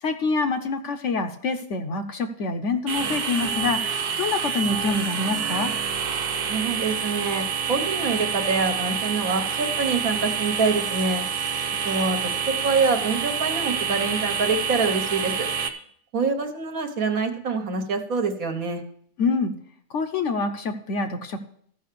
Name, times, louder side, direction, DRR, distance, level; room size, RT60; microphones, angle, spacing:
voice 1, 0.0-5.7 19.2-19.6 19.9-21.4, left 3 dB, 55° left, 7 dB, 1.0 m, -26 dB
sound 1, 2.9-15.7, right 6 dB, 85° right, 1.4 m, -27 dB
voice 2, 6.5-11.2 11.8-15.5 16.1-18.8, right 4 dB, 65° right, 5 dB, 1.5 m, -25 dB
13.5 x 5.6 x 6.7 m, 0.64 s
omnidirectional pair, 1.6 m